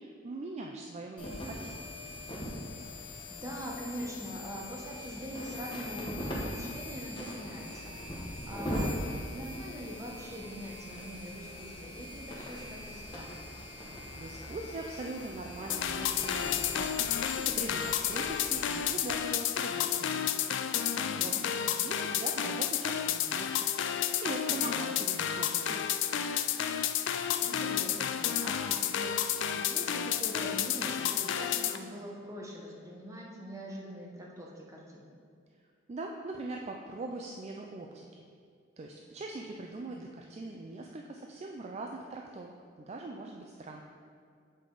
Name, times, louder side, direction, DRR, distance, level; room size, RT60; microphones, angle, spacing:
voice 1, 0.0-1.9 13.8-20.2 21.0-25.9 35.9-38.3 38.8-43.8, right 2 dB, 35° right, 1 dB, 0.3 m, -42 dB
sound 1, 1.2-19.2, left 1 dB, 25° left, 0.9 m, -40 dB
voice 2, 3.3-9.0 9.3-13.4 21.0-21.6 26.9-29.2 29.5-35.1, equal, 15° right, -2 dB, 0.9 m, -43 dB
sound 2, 15.7-31.8, left 9 dB, 65° left, 0.3 m, -31 dB
7.7 x 4.9 x 3.9 m, 2.3 s
head